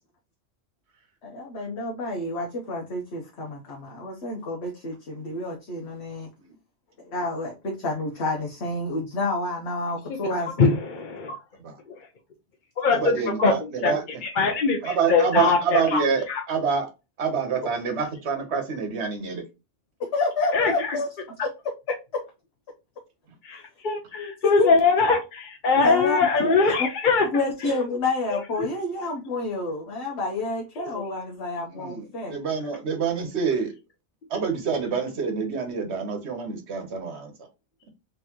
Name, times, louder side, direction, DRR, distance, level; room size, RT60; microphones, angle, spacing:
voice 1, 1.2-6.3 7.0-10.8 20.0-21.1 21.4-21.5 22.1-22.2 24.1-24.3 24.6-24.7 25.8-26.5 27.3-32.4, left 2 dB, 65° left, 1.2 m, -29 dB
voice 2, 10.6-11.3 12.8-13.0 13.4-13.5 13.8-14.0 14.4-16.0 16.3-16.4 20.5-20.7 23.4-27.3 30.8-31.0, left 4 dB, 45° left, 0.9 m, -22 dB
voice 3, 12.9-14.2 14.8-16.9 17.2-19.4 31.7-33.7 34.3-37.3, right 6 dB, 65° right, 1.3 m, -27 dB
3.9 x 3.4 x 2.9 m
omnidirectional pair, 1.2 m